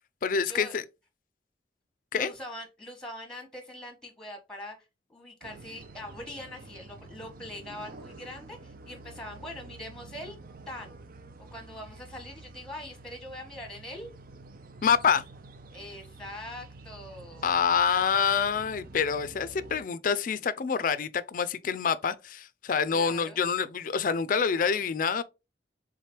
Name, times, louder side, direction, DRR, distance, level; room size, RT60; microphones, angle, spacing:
voice 1, 0.2-0.8 2.1-2.3 14.8-15.2 17.4-25.2, left 6 dB, 50° left, 0.4 m, -26 dB
voice 2, 2.1-4.8 5.1-10.4 10.7-11.0 11.5-14.1 15.7-18.2 22.9-23.4, left 1 dB, 5° left, 1.1 m, -42 dB
sound 1, 5.4-19.8, right 2 dB, 50° right, 0.5 m, -49 dB
3.6 x 3.3 x 4.4 m
head